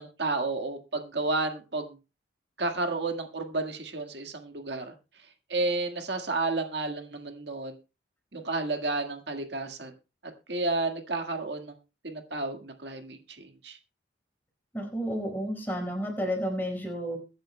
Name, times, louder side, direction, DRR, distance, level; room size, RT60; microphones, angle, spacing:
voice 1, 0.0-2.0 2.6-4.9 5.5-7.7 8.3-9.9 10.5-11.8 12.0-13.8, right 3 dB, 65° right, 5 dB, 1.7 m, -31 dB
voice 2, 14.7-17.2, equal, 10° left, 1 dB, 4.9 m, -31 dB
22.5 x 10.5 x 2.2 m, 0.30 s
head